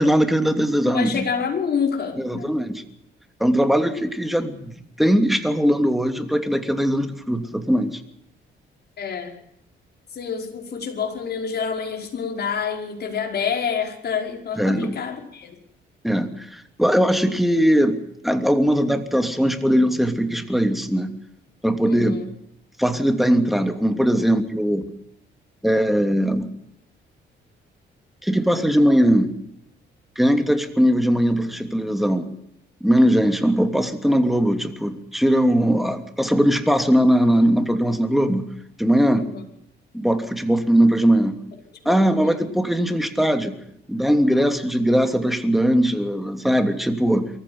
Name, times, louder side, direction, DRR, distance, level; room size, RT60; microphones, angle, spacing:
voice 1, 0.0-1.3 2.2-2.8 3.4-8.0 14.5-14.9 16.0-21.1 21.6-22.2 22.8-24.9 25.6-26.5 28.2-29.3 30.2-32.3 32.8-38.5 38.8-39.3 39.9-41.4 41.8-43.6 43.9-47.3, equal, ahead, 7 dB, 2.9 m, -20 dB
voice 2, 0.8-2.5 9.0-9.3 10.1-15.6 21.9-22.3 39.2-39.4 41.8-42.5, left 6 dB, 55° left, 3 dB, 5.3 m, -28 dB
23.5 x 15.0 x 9.7 m, 0.74 s
cardioid pair, 90°, 20 cm